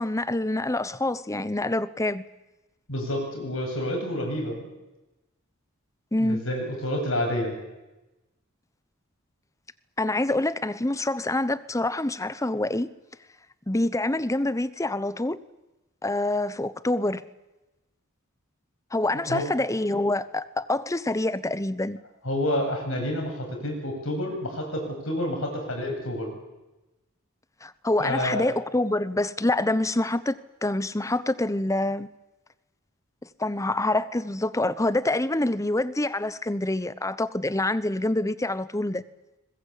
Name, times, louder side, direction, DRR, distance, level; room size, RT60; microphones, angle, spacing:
voice 1, 0.0-2.2 6.1-6.4 10.0-12.9 13.7-15.4 16.0-17.2 18.9-22.0 27.6-32.1 33.4-39.0, left 2 dB, 15° left, 0.9 m, -26 dB
voice 2, 2.9-4.7 6.2-7.6 19.3-19.5 22.2-26.3 28.0-28.5, left 1 dB, 65° left, 7.9 m, -29 dB
23.0 x 21.0 x 8.5 m
head